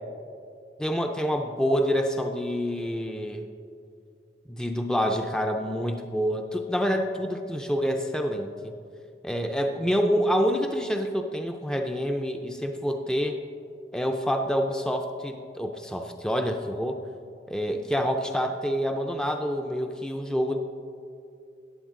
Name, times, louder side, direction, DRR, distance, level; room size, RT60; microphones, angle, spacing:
voice 1, 0.8-3.5 4.5-8.7 9.2-13.4 13.9-17.0 17.5-20.6, equal, 5° left, 4 dB, 0.4 m, -27 dB
15.0 x 9.0 x 3.7 m, 2.5 s
head